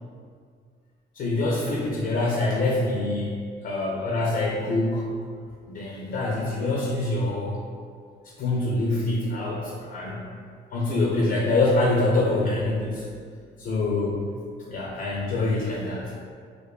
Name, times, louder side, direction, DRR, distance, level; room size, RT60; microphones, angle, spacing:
voice 1, 1.1-3.4 3.6-5.1 5.7-7.6 8.4-10.2 10.7-13.0 13.6-14.3 14.7-16.2, left 2 dB, 50° left, -4 dB, 0.4 m, -25 dB
2.4 x 2.2 x 2.3 m, 2.1 s
cardioid pair, 90°, 20 cm